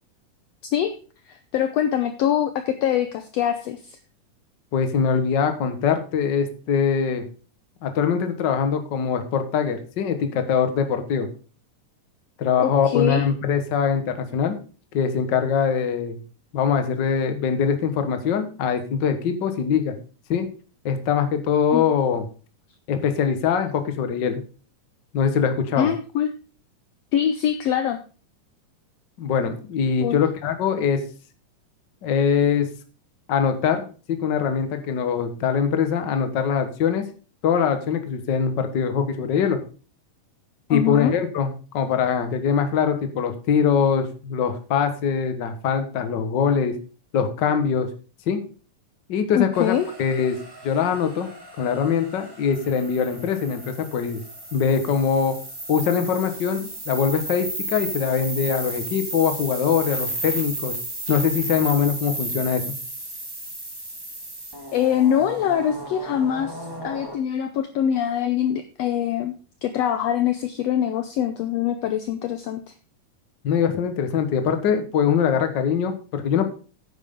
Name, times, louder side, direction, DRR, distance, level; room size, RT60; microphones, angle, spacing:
voice 1, 1.3-4.0 12.6-13.3 21.7-21.8 25.8-26.3 27.1-28.0 30.0-30.2 40.7-41.2 49.3-49.9 64.7-69.3 69.6-72.7, left 10 dB, 80° left, 8 dB, 1.4 m, -23 dB
voice 2, 4.7-7.3 7.8-11.3 12.4-14.6 14.9-16.2 16.5-19.9 20.3-20.5 20.8-22.2 22.9-24.4 25.1-25.9 29.2-31.0 32.0-32.7 33.3-37.0 37.4-39.6 40.7-46.8 47.1-47.9 48.3-48.4 49.1-50.4 50.6-51.3 51.6-54.2 54.5-55.4 55.7-60.7 61.1-62.6 73.4-76.4, left 7 dB, 55° left, 7 dB, 1.3 m, -22 dB
sound 1, 49.5-67.2, right 1 dB, 30° right, 0.4 m, -34 dB
11.0 x 9.4 x 3.7 m, 0.37 s
omnidirectional pair, 3.8 m